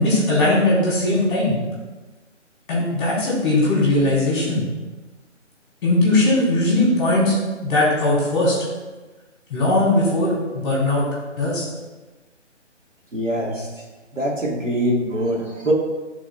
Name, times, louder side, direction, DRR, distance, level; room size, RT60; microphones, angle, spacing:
voice 1, 0.0-1.6 2.7-4.7 5.8-7.4 7.6-8.6 9.5-11.1 11.4-11.7 13.5-13.6, left 2 dB, 20° left, -5 dB, 1.9 m, -19 dB
voice 2, 13.1-13.7 14.1-15.7, right 1 dB, 85° right, -2 dB, 1.8 m, -23 dB
11.0 x 3.9 x 2.7 m, 1.2 s
figure-of-eight pair, 150°, 37 cm